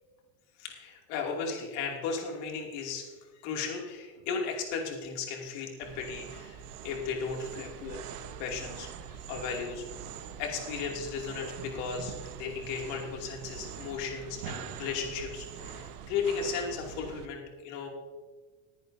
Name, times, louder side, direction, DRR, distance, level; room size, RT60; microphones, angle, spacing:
voice 1, 0.6-3.1 3.4-6.6 6.8-8.0 8.4-9.8 10.4-17.9, left 5 dB, 60° left, 0 dB, 2.7 m, -35 dB
sound 1, 5.8-17.2, right 8 dB, 90° right, 1.2 m, -44 dB
20.0 x 10.5 x 2.7 m, 1.3 s
supercardioid pair, 145°, 44 cm